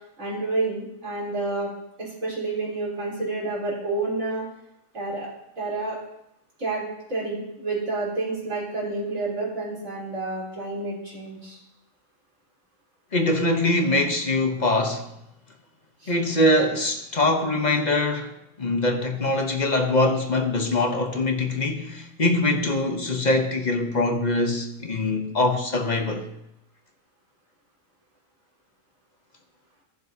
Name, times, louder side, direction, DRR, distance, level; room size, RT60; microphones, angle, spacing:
voice 1, 0.2-1.7 2.0-4.4 4.9-5.3 5.6-6.0 6.6-11.6 16.0-16.1, right 3 dB, 80° right, 4.2 m, -29 dB
voice 2, 13.1-15.1 16.1-18.3 18.6-26.2, left 2 dB, 35° left, 1.0 m, -23 dB
16.0 x 7.4 x 2.7 m
omnidirectional pair, 1.4 m